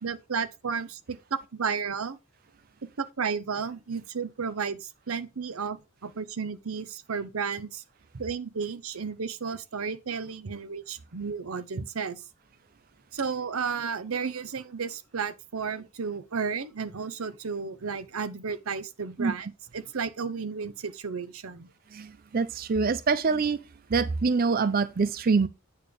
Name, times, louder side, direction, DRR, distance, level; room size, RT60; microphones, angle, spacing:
voice 1, 0.0-2.2 3.0-7.8 8.1-12.2 13.1-19.5 19.7-21.7, right 5 dB, 85° right, 0.8 m, -33 dB
voice 2, 21.9-23.6 23.9-25.5, right 4 dB, 45° right, 0.5 m, -25 dB
9.1 x 3.3 x 6.8 m
head